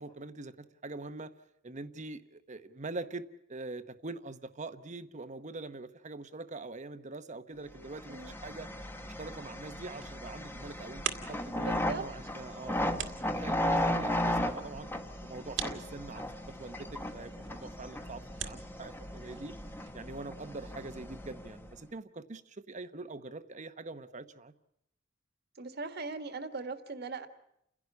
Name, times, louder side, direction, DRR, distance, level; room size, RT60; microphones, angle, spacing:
voice 1, 0.0-1.3 1.6-8.7 9.0-14.9 15.2-19.5 19.9-24.5, right 3 dB, 40° right, 11 dB, 1.0 m, -44 dB
sound 1, 7.9-21.7, left 1 dB, 10° left, 1.1 m, -36 dB
sound 2, 9.7-19.9, right 8 dB, 80° right, 1.9 m, -45 dB
voice 2, 11.5-12.0 25.5-27.3, right 3 dB, 55° right, 9 dB, 1.6 m, -39 dB
30.0 x 11.0 x 9.5 m, 0.78 s
head